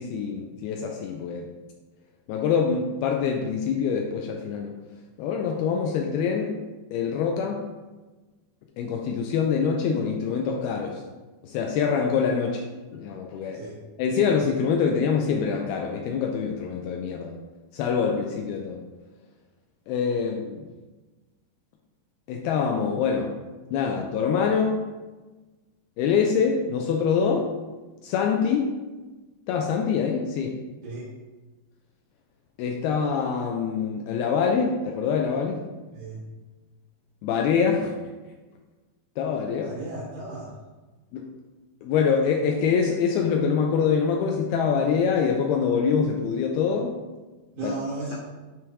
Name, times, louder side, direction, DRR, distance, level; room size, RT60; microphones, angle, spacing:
voice 1, 0.0-1.5 2.3-4.7 5.2-6.6 6.9-7.6 8.8-11.0 11.4-12.6 12.9-13.6 14.0-17.3 17.7-18.8 19.9-20.6 22.3-23.3 23.7-24.8 26.0-27.5 28.0-28.7 29.5-30.6 32.6-35.6 37.2-37.9 39.2-39.7 41.1-41.3 41.8-46.9 47.6-47.7, left 6 dB, 85° left, 1 dB, 2.2 m, -25 dB
voice 2, 39.5-40.6 47.5-48.2, right 2 dB, 75° right, -7 dB, 3.3 m, -35 dB
9.2 x 3.2 x 4.8 m, 1.2 s
omnidirectional pair, 5.0 m